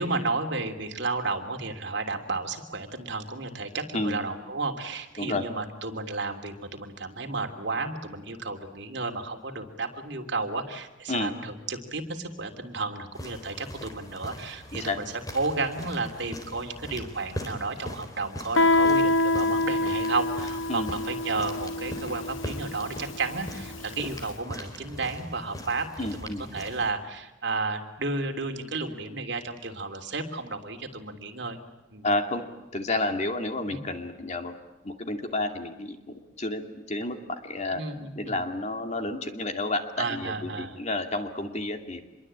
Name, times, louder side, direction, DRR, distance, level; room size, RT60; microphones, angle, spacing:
voice 1, 0.0-15.0 15.3-31.6 31.9-32.1 33.7-33.8 37.7-38.4 40.0-40.8, right 3 dB, 65° right, 5 dB, 3.1 m, -32 dB
sound 1, 13.1-26.9, equal, 20° left, 4.0 m, -41 dB
Guitar, 18.6-24.0, left 2 dB, 90° left, 1.2 m, -26 dB
voice 2, 26.0-26.4 32.0-32.4 32.7-34.5 34.8-37.8 38.2-42.0, left 2 dB, 35° left, 6 dB, 2.5 m, -30 dB
26.5 x 22.5 x 8.8 m, 1.1 s
head